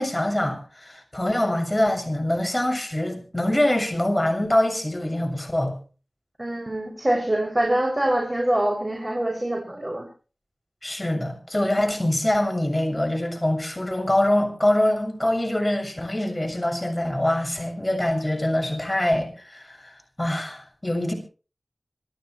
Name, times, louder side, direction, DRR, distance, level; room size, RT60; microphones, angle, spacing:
voice 1, 0.0-5.8 10.8-21.1, left 1 dB, 20° left, 3 dB, 6.9 m, -24 dB
voice 2, 6.4-10.1, right 1 dB, 25° right, 1 dB, 7.0 m, -24 dB
27.0 x 13.5 x 3.3 m, 0.37 s
wide cardioid pair, 45°, 0 cm